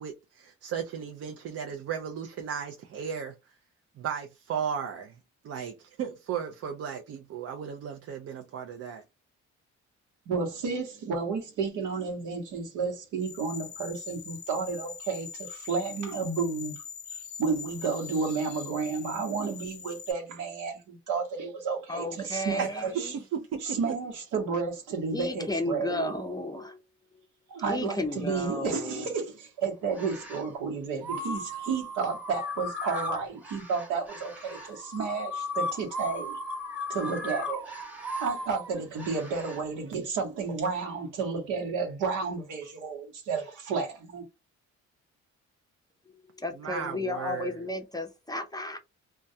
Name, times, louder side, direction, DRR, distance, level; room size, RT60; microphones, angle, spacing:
voice 1, 0.0-3.3 4.0-5.2 5.4-9.0 22.6-23.8 46.6-47.6, right 7 dB, 55° right, 0.4 m, -35 dB
voice 2, 10.3-16.7 17.1-23.1 23.6-26.1 27.5-36.4 36.9-37.6 38.2-44.2, right 5 dB, 80° right, 1.0 m, -32 dB
sound 1, 13.2-20.1, left 7 dB, 65° left, 0.5 m, -43 dB
voice 3, 21.9-23.2 25.1-26.8 27.7-29.1 46.3-48.8, left 2 dB, 15° left, 0.5 m, -33 dB
sound 2, 29.9-30.5 31.0-39.6, left 1 dB, 5° right, 0.9 m, -36 dB
2.2 x 2.2 x 2.6 m
cardioid pair, 90°, 30 cm